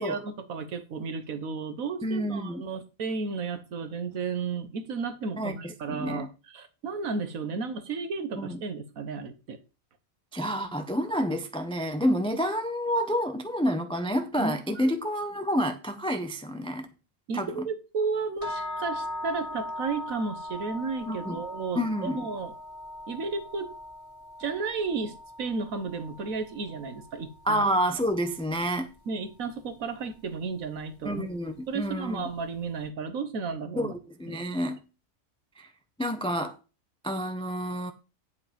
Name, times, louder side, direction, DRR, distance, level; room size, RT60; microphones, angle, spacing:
voice 1, 0.0-9.6 14.4-14.9 17.3-22.5 23.1-23.7 24.4-27.6 29.1-31.3 31.7-33.9 34.3-34.4, right 4 dB, 90° right, 1.6 m, -33 dB
voice 2, 2.0-2.6 5.4-6.3 8.4-8.6 10.3-16.9 17.3-17.5 21.1-21.4 21.8-22.3 27.5-28.9 31.0-32.3 33.8-34.8 35.6-35.7 36.0-36.6 37.0-37.9, equal, 5° left, 0.5 m, -29 dB
sound 1, 18.4-28.5, left 1 dB, 25° left, 2.7 m, -40 dB
10.5 x 5.1 x 5.2 m
omnidirectional pair, 1.4 m